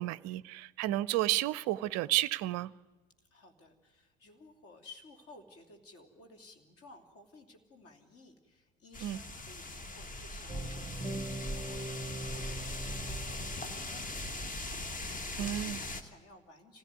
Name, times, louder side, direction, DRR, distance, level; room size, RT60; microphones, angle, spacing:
voice 1, 0.0-2.7 9.0-9.2 15.4-15.8, right 15 dB, 40° right, 0.7 m, -31 dB
voice 2, 3.3-14.8 15.1-16.8, left 2 dB, 35° left, 3.2 m, -56 dB
sound 1, 8.9-16.0, left 1 dB, 20° left, 1.6 m, -40 dB
sound 2, 10.5-14.7, right 1 dB, 5° right, 1.3 m, -42 dB
25.5 x 16.0 x 9.3 m
figure-of-eight pair, 70°, 39 cm